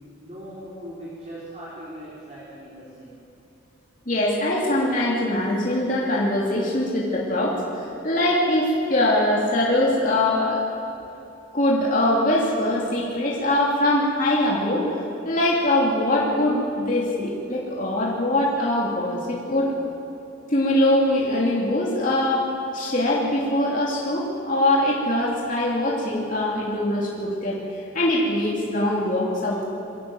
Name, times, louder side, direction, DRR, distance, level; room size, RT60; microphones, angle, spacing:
voice 1, 0.2-3.2, equal, 30° right, -7 dB, 4.2 m, -39 dB
voice 2, 4.1-10.6 11.5-14.9 15.2-19.7 20.5-29.6, left 1 dB, 40° left, -5 dB, 3.0 m, -22 dB
23.5 x 16.5 x 7.8 m, 2.8 s
head